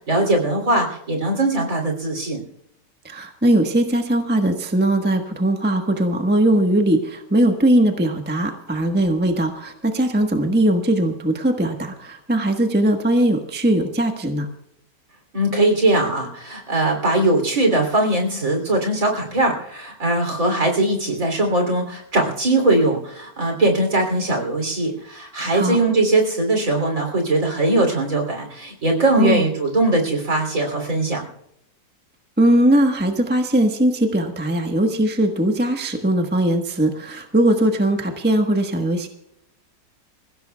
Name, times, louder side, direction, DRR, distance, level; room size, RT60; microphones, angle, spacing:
voice 1, 0.1-2.4 15.3-31.2, right 2 dB, 50° right, 3 dB, 3.5 m, -20 dB
voice 2, 3.0-14.5 25.5-25.8 29.1-29.5 32.4-39.1, right 1 dB, 5° right, 4 dB, 1.0 m, -20 dB
27.0 x 16.0 x 2.3 m, 0.79 s
omnidirectional pair, 1.9 m